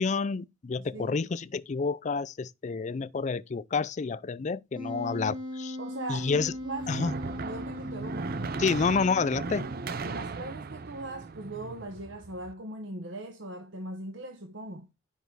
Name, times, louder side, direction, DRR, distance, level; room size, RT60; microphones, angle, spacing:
voice 1, 0.0-5.8 6.1-6.5 6.9-7.1 8.6-9.7, left 4 dB, 40° left, 0.4 m, -29 dB
voice 2, 0.8-1.2 5.8-7.1 7.4-8.4 8.8-9.0 10.0-14.9, right 2 dB, 70° right, 1.0 m, -40 dB
Wind instrument woodwind instrument, 4.8-10.2, left 1 dB, 25° right, 3.7 m, -39 dB
sound 1, 6.4-12.5, right 4 dB, 50° right, 0.6 m, -37 dB
10.5 x 5.4 x 4.6 m
head